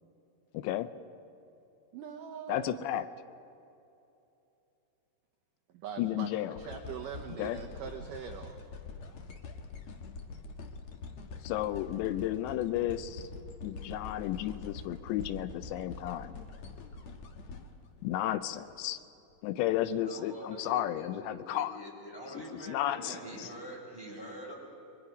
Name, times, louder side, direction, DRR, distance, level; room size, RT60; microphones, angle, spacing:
voice 1, 0.5-0.9 2.5-3.1 6.0-6.5 7.4-7.6 11.4-13.3 13.6-16.3 18.0-19.0 19.4-21.8 22.5-23.5, left 12 dB, 85° left, 12 dB, 2.9 m, -33 dB
voice 2, 1.9-3.1 5.7-6.3 6.6-8.6, right 7 dB, 80° right, 4 dB, 1.9 m, -42 dB
sound 1, 6.6-18.8 19.3-19.4, left 4 dB, 60° left, 1.9 m, -45 dB
voice 3, 20.0-24.5, equal, 5° left, -3 dB, 5.2 m, -44 dB
28.0 x 23.5 x 5.1 m, 2.8 s
omnidirectional pair, 5.1 m